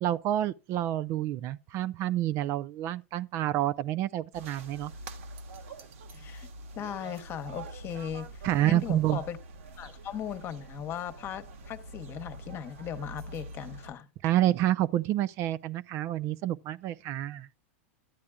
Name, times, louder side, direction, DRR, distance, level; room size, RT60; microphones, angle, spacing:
voice 1, 0.0-4.9 8.4-9.2 14.2-17.5, right 13 dB, 45° right, 0.4 m, -28 dB
sound 1, 4.3-13.9, right 2 dB, 75° right, 1.4 m, -45 dB
voice 2, 6.1-6.5 6.8-9.4 9.8-14.1, left 9 dB, 35° left, 1.1 m, -38 dB
13.0 x 8.5 x 2.3 m
hypercardioid pair, 115°, 7 cm